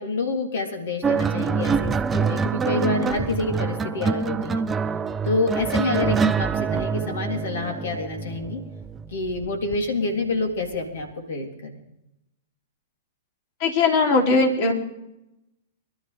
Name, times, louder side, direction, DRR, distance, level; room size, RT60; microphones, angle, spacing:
voice 1, 0.0-4.6 5.2-8.6 9.1-11.8, left 3 dB, 70° left, 2 dB, 3.3 m, -27 dB
sound 1, 1.0-9.7 10.7-11.0, right 5 dB, 15° right, 0.6 m, -25 dB
voice 2, 13.6-14.7, left 3 dB, 50° left, 2 dB, 3.2 m, -19 dB
24.0 x 12.0 x 3.5 m, 0.88 s
hypercardioid pair, 110°, 0 cm